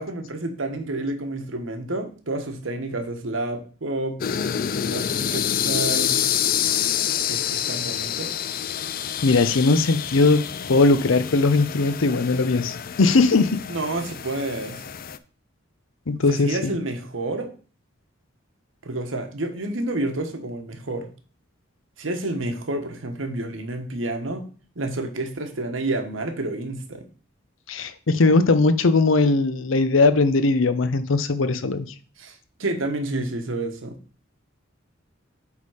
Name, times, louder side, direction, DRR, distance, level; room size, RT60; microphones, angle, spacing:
voice 1, 0.0-4.2 4.9-6.2 7.3-8.3 13.7-14.8 16.3-17.5 18.8-21.1 22.0-24.4 24.8-27.1 32.2-34.0, right 2 dB, 85° right, 6 dB, 1.2 m, -29 dB
sound 1, 4.2-15.2, left 9 dB, 50° left, 0.4 m, -27 dB
voice 2, 9.2-10.4 10.7-13.6 16.1-16.7 27.7-31.9, left 3 dB, 90° left, 12 dB, 0.7 m, -19 dB
8.3 x 3.7 x 4.8 m, 0.38 s
head